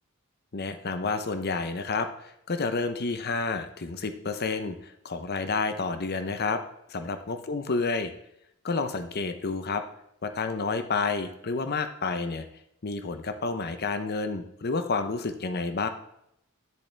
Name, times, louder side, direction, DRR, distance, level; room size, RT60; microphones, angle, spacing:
voice 1, 0.5-6.6 6.9-8.1 8.6-9.8 10.2-12.5 12.8-15.9, left 4 dB, 50° left, 9 dB, 0.8 m, -30 dB
10.5 x 6.8 x 3.4 m, 0.75 s
head